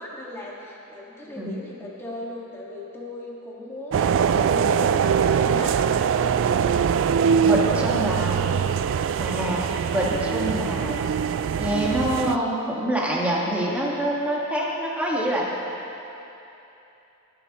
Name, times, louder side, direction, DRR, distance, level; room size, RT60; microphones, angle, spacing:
voice 1, 0.0-5.9 7.0-7.9, left 2 dB, 10° left, -5 dB, 1.6 m, -38 dB
voice 2, 1.2-1.5 7.4-8.5 9.2-11.0 11.5-15.5, right 1 dB, 5° right, -4 dB, 1.5 m, -26 dB
sound 1, 3.9-12.4, right 7 dB, 60° right, 0.3 m, -22 dB
24.5 x 8.5 x 3.0 m, 3.0 s
head